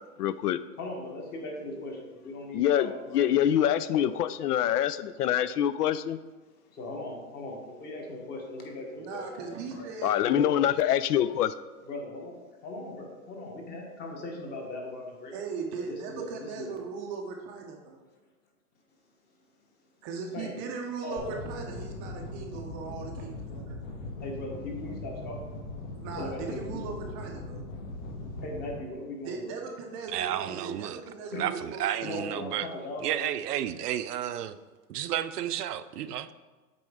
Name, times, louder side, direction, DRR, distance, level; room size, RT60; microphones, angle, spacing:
voice 1, 0.2-0.6 2.5-6.2 10.0-11.5, left 10 dB, 90° left, 15 dB, 0.5 m, -25 dB
voice 2, 0.8-3.3 3.9-4.1 6.7-9.9 10.2-10.5 11.8-15.3 15.9-16.7 20.3-20.6 21.0-21.4 23.8-25.5 26.2-26.8 27.8-29.6 31.3-31.5 32.0-33.3, left 2 dB, 20° left, 1 dB, 1.0 m, -39 dB
voice 3, 9.0-10.2 15.3-18.0 20.0-23.8 25.9-27.6 29.2-32.2, right 5 dB, 20° right, 2 dB, 0.5 m, -38 dB
sound 1, 21.2-28.8, left 2 dB, 55° left, 1.3 m, -40 dB
voice 4, 30.1-31.0 31.3-32.7 33.0-34.6 34.9-36.3, right 11 dB, 90° right, 12 dB, 0.6 m, -32 dB
7.8 x 4.3 x 3.6 m, 1.3 s
hypercardioid pair, 140°, 45 cm